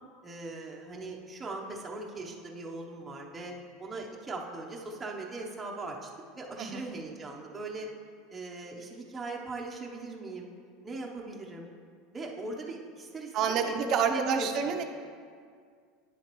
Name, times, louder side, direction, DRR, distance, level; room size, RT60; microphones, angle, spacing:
voice 1, 0.2-6.1 6.3-7.9 8.3-10.5 10.8-11.7 12.1-14.5, right 3 dB, 15° right, -2 dB, 0.8 m, -39 dB
voice 2, 13.3-14.8, right 6 dB, 45° right, 6 dB, 0.7 m, -28 dB
9.7 x 7.1 x 3.1 m, 2.1 s
supercardioid pair, 140°, 0 cm